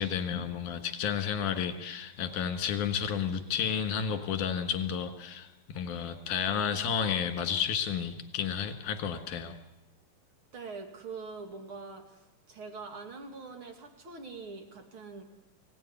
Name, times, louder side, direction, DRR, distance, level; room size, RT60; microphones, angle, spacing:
voice 1, 0.0-9.6, left 7 dB, 70° left, 8 dB, 3.2 m, -31 dB
voice 2, 10.5-15.2, right 4 dB, 40° right, 5 dB, 2.8 m, -44 dB
24.0 x 17.5 x 9.8 m, 0.98 s
omnidirectional pair, 4.0 m